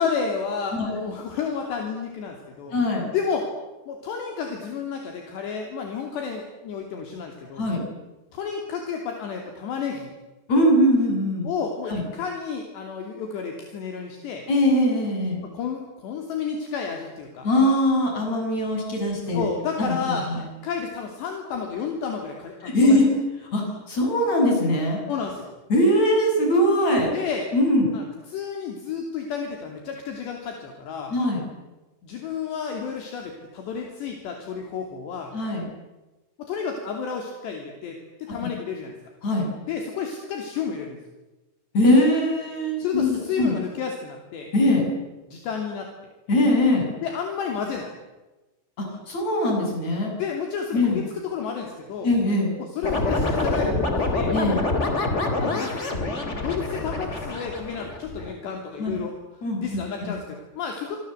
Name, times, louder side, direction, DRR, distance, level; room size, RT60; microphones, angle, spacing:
voice 1, 0.0-2.8 3.1-3.5 3.9-7.6 8.3-10.1 11.4-14.4 15.4-17.5 19.3-23.0 25.1-25.5 27.1-27.5 27.9-31.1 32.0-35.3 36.4-38.9 39.6-41.0 42.8-44.5 45.3-45.9 47.0-47.9 50.2-52.1 52.6-54.3 55.4-55.8 56.4-59.1 59.6-61.0, left 6 dB, 65° left, 3 dB, 4.9 m, -31 dB
voice 2, 2.7-3.1 7.6-7.8 10.5-11.5 11.9-12.0 14.5-15.4 17.4-19.4 19.8-20.4 22.6-23.1 23.5-25.0 25.7-27.1 27.5-27.9 31.1-31.4 35.3-35.6 38.3-38.5 39.2-39.5 41.7-43.5 44.5-44.8 46.3-46.9 48.8-50.1 50.7-51.0 52.0-52.5 54.3-54.6 58.8-59.0 59.4-59.7 60.0-60.2, left 1 dB, 35° left, 1 dB, 8.6 m, -21 dB
sound 1, 52.8-58.3, left 2 dB, 15° left, 2.9 m, -26 dB
27.5 x 25.5 x 8.1 m, 1.1 s
omnidirectional pair, 5.5 m